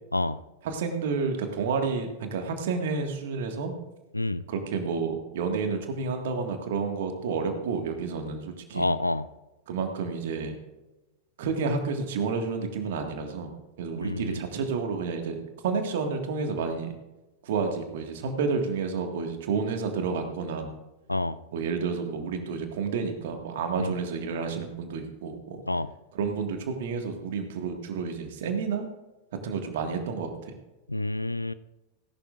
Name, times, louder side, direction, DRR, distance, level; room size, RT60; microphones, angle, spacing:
voice 1, 0.6-3.7 4.5-8.9 9.7-10.6 11.4-13.5 13.8-15.4 15.6-17.0 17.4-20.7 21.5-25.6 26.1-28.9 29.4-30.6, right 5 dB, 55° right, 4 dB, 1.8 m, -30 dB
voice 2, 8.7-9.3 14.0-14.4 21.1-21.4 23.8-23.9 25.7-25.9 30.9-31.5, left 2 dB, 85° left, 15 dB, 0.3 m, -28 dB
17.5 x 11.5 x 2.5 m, 1.0 s
figure-of-eight pair, 90°, 0 cm